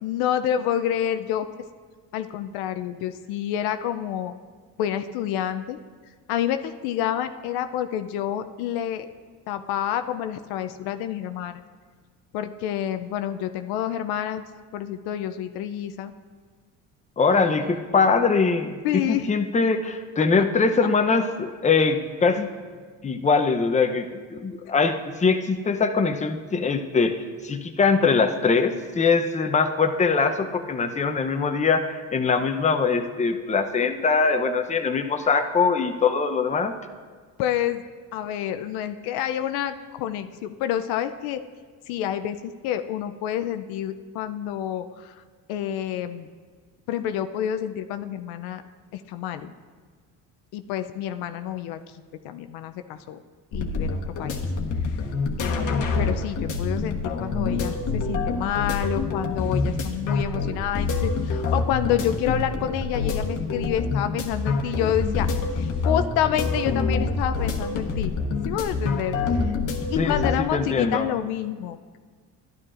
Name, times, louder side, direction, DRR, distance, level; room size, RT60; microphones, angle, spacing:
voice 1, 0.0-1.5 2.1-4.3 4.8-5.8 6.3-9.1 9.5-11.6 12.3-14.4 14.7-16.1 17.3-17.6 18.8-19.3 37.4-37.8 38.1-41.4 41.9-45.2 45.5-46.3 46.9-48.6 48.9-49.5 50.5-51.8 52.2-53.2 53.5-54.4 55.4-65.3 65.5-68.1 68.5-69.2 69.5-69.6 69.9-72.0, left 10 dB, 85° left, 9 dB, 0.5 m, -28 dB
voice 2, 17.2-22.5 23.0-27.2 27.4-36.8 70.0-71.1, left 4 dB, 20° left, 6 dB, 0.6 m, -22 dB
sound 1, 53.5-70.3, left 4 dB, 55° left, 1.2 m, -26 dB
12.0 x 10.5 x 2.5 m, 1.6 s
supercardioid pair, 80°, 37 cm